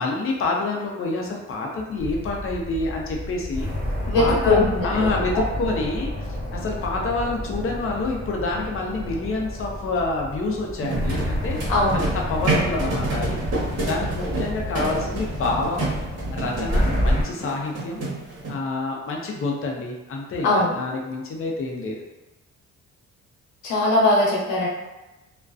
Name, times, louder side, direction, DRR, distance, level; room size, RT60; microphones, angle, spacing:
voice 1, 0.0-3.7 4.2-11.6 11.9-13.4 13.9-15.9 16.3-18.1 18.5-22.0, left 3 dB, 45° left, 0 dB, 0.6 m, -27 dB
sound 1, 2.0-17.2, equal, 5° right, 1.1 m, -29 dB
voice 2, 4.1-5.4 11.7-12.0 20.4-20.7 23.6-24.7, left 2 dB, 90° left, -3 dB, 0.8 m, -20 dB
sound 2, 10.8-18.5, right 2 dB, 55° right, 0.9 m, -29 dB
2.4 x 2.2 x 2.4 m, 1.0 s
cardioid pair, 90°, 30 cm